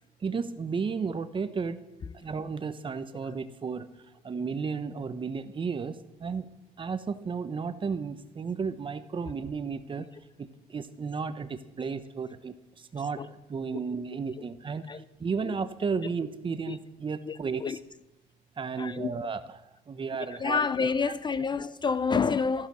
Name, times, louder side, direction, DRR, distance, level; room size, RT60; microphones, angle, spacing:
voice 1, 0.2-1.8 2.1-3.9 4.2-6.5 6.8-10.1 10.4-14.9 15.2-17.7 18.6-19.4 19.9-20.7 21.0-21.1 21.4-21.5, right 5 dB, 30° right, 0.9 m, -33 dB
voice 2, 17.2-17.8 18.8-19.1 20.3-22.7, left 5 dB, 25° left, 0.5 m, -28 dB
14.0 x 10.5 x 6.2 m
cardioid pair, 110°, 17 cm